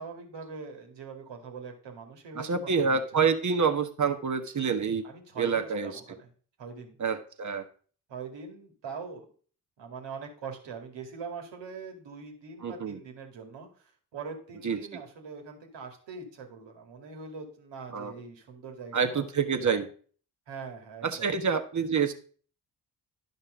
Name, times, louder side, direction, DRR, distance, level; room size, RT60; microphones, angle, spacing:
voice 1, 0.0-3.0 5.0-6.3 6.6-7.0 8.1-9.3 9.8-19.8 20.5-21.3, right 5 dB, 65° right, 4 dB, 2.3 m, -42 dB
voice 2, 2.3-5.0 5.4-5.9 7.0-7.6 12.6-13.0 14.6-15.0 17.9-18.1 18.9-19.9 21.0-22.1, right 5 dB, 40° right, 7 dB, 1.5 m, -27 dB
11.5 x 5.3 x 5.0 m, 0.43 s
hypercardioid pair, 40°, 47 cm